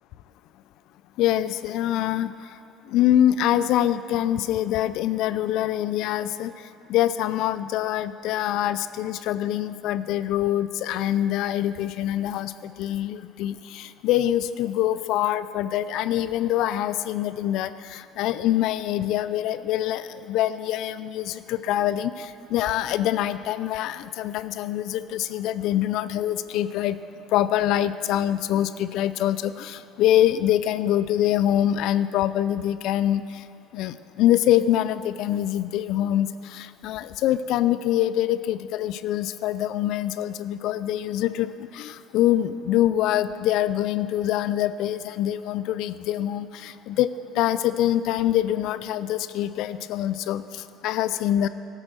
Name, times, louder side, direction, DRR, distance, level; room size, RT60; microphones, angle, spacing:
voice 1, 1.2-2.3 2.9-6.5 6.9-27.0 27.3-33.4 33.7-51.5, left 12 dB, 70° left, 14 dB, 0.4 m, -24 dB
14.0 x 7.8 x 6.1 m, 2.5 s
supercardioid pair, 95°, 0 cm